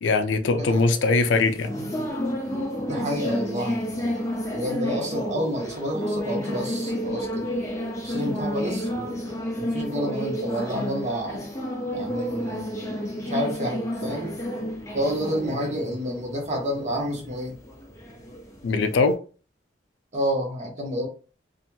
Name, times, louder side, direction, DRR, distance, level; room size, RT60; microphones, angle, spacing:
voice 1, 0.0-1.7 18.6-19.2, left 3 dB, 80° left, 0.4 m, -21 dB
sound 1, 0.7-19.1, equal, 15° left, 0.6 m, -31 dB
voice 2, 2.9-4.2 4.5-7.5 8.0-11.4 11.9-14.3 14.9-17.6 20.1-21.1, equal, 40° right, 1.0 m, -29 dB
2.8 x 2.5 x 2.2 m
head